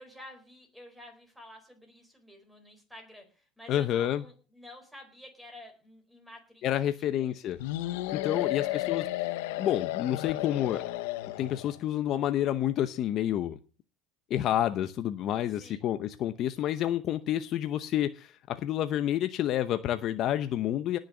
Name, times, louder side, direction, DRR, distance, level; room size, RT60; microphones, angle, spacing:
voice 1, 0.0-6.6 7.1-7.4 8.4-8.9 15.6-15.8, left 1 dB, ahead, 4 dB, 4.4 m, -50 dB
voice 2, 3.7-4.2 6.6-7.6 8.1-9.1 9.6-10.8 11.4-13.6 14.3-21.0, left 11 dB, 40° left, 11 dB, 0.8 m, -29 dB
sound 1, 7.6-11.8, left 17 dB, 85° left, 1.1 m, -33 dB
18.5 x 6.6 x 7.1 m, 0.37 s
cardioid pair, 150°, 0 cm